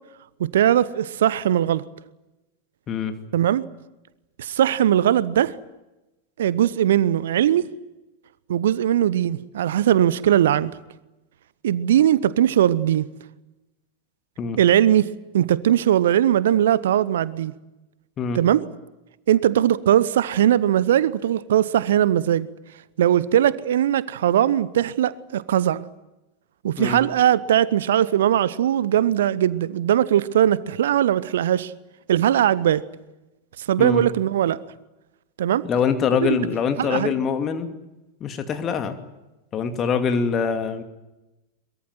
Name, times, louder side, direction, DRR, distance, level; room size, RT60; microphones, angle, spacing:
voice 1, 0.4-1.8 3.3-3.6 4.4-5.5 6.4-7.7 8.5-10.7 11.6-13.1 14.6-15.1 15.3-17.5 18.3-18.6 19.3-22.5 23.0-25.8 26.6-31.7 32.1-32.8 33.6-34.6 35.4-35.6 36.2-36.4 36.8-37.1, right 11 dB, 60° right, 19 dB, 0.8 m, -20 dB
voice 2, 35.6-37.7 38.2-39.0 39.5-40.8, left 6 dB, 30° left, 7 dB, 2.5 m, -24 dB
23.0 x 22.0 x 9.4 m, 1.0 s
figure-of-eight pair, 90°, 0 cm